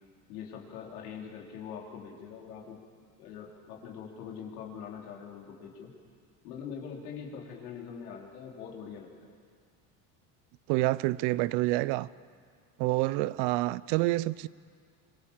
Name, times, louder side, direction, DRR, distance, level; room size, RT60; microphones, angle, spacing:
voice 1, 0.3-2.8 3.2-5.9 6.4-9.3 13.2-13.4, left 7 dB, 85° left, 4.2 m, -43 dB
voice 2, 10.7-12.1 12.8-14.5, right 19 dB, 70° right, 0.7 m, -27 dB
25.0 x 23.0 x 7.4 m
supercardioid pair, 95°, 43 cm